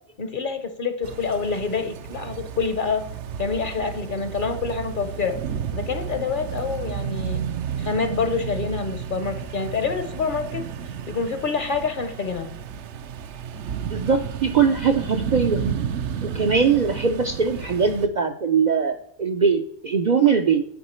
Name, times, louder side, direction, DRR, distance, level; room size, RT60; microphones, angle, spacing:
voice 1, 0.2-3.0 3.4-5.4 5.7-7.4 7.8-10.6 11.1-12.5, left 5 dB, 50° left, 9 dB, 0.8 m, -27 dB
sound 1, 1.0-18.1, right 7 dB, 75° right, 0.9 m, -32 dB
voice 2, 13.9-15.8 16.2-20.6, right 6 dB, 55° right, 5 dB, 0.5 m, -21 dB
8.1 x 4.7 x 4.2 m, 0.70 s
omnidirectional pair, 1.2 m